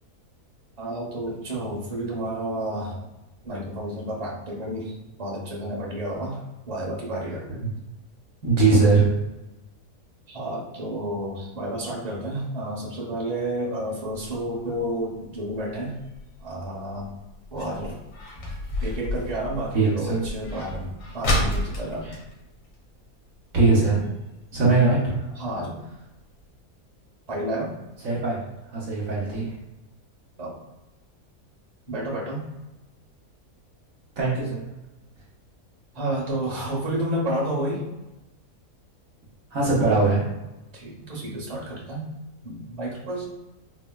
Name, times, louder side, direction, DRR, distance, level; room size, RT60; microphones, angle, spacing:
voice 1, 0.8-3.0 3.4-7.4 8.7-8.8 10.3-16.0 16.4-17.1 17.5-18.0 18.8-22.1 25.4-25.8 27.3-27.8 30.4-30.6 31.9-32.5 35.9-37.9 40.7-42.1 42.4-43.2, right 1 dB, 30° right, -3 dB, 0.8 m, -31 dB
voice 2, 8.4-9.0 19.7-20.2 22.0-22.2 23.5-24.0 24.5-25.2 28.0-28.4 28.7-29.5 34.2-34.6 39.5-40.3, right 3 dB, 65° right, -6 dB, 1.1 m, -20 dB
sound 1, 14.1-23.4 23.7-23.8 24.1-24.4 24.9-25.0 25.5-25.6 25.9-26.0 26.4-26.5, left 1 dB, 85° left, 1.6 m, -31 dB
4.2 x 2.1 x 2.2 m, 1.0 s
omnidirectional pair, 1.7 m